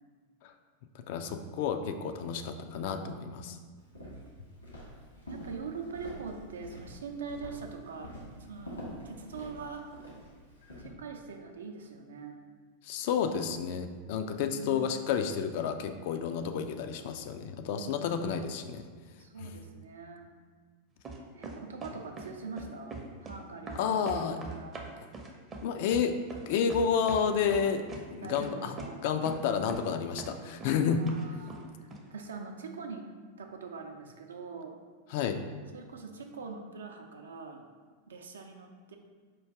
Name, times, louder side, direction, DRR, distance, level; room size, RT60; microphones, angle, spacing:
voice 1, 1.1-3.6 12.8-18.9 19.4-19.5 23.8-24.4 25.6-26.2 26.4-28.7 29.0-31.1 35.1-35.4, left 7 dB, 50° left, 7 dB, 0.3 m, -30 dB
voice 2, 2.6-3.6 5.3-9.9 10.8-12.4 14.5-15.1 17.7-18.2 19.2-20.3 21.3-24.8 28.2-29.0 30.6-33.1 33.4-34.8 35.7-37.6 38.1-39.0, right 4 dB, 65° right, 4 dB, 0.5 m, -43 dB
Walk footsteps, 3.8-10.9, equal, 80° left, 1.4 m, -46 dB
sound 1, 21.0-22.3 22.6-23.4 23.7-27.2 27.5-28.0 28.4-28.5 28.8-28.9 29.3-29.4 29.7-29.9 30.2-30.7 31.1-31.6 31.9-32.0, right 3 dB, 25° right, 0.6 m, -42 dB
4.5 x 2.5 x 4.6 m, 1.5 s
figure-of-eight pair, 90°, 0 cm